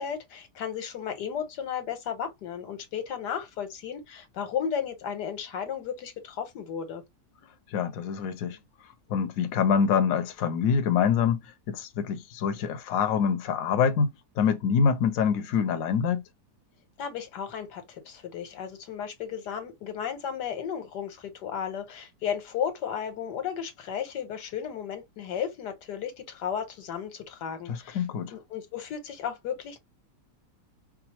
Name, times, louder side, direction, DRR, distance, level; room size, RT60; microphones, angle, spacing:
voice 1, 0.0-7.0 17.0-28.0 28.3-29.8, left 8 dB, 85° left, 1.5 m, -34 dB
voice 2, 7.7-8.6 9.1-16.2 27.7-28.3, left 6 dB, 65° left, 1.0 m, -25 dB
4.8 x 2.0 x 2.9 m
omnidirectional pair, 1.7 m